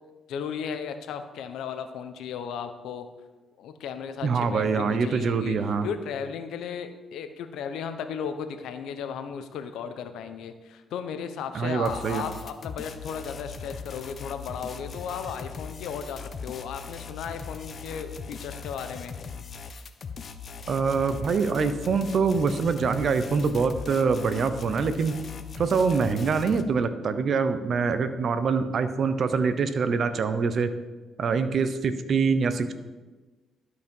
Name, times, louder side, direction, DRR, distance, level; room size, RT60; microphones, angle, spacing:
voice 1, 0.3-3.1 3.6-5.6 5.8-19.1, left 7 dB, 80° left, 8 dB, 0.8 m, -35 dB
voice 2, 4.2-5.9 11.5-12.2 20.7-25.2 25.6-30.7 31.2-32.7, right 5 dB, 55° right, 11 dB, 0.8 m, -25 dB
sound 1, 11.9-26.6, left 5 dB, 50° left, 0.7 m, -40 dB
12.0 x 4.9 x 5.4 m, 1.2 s
cardioid pair, 90°, 0 cm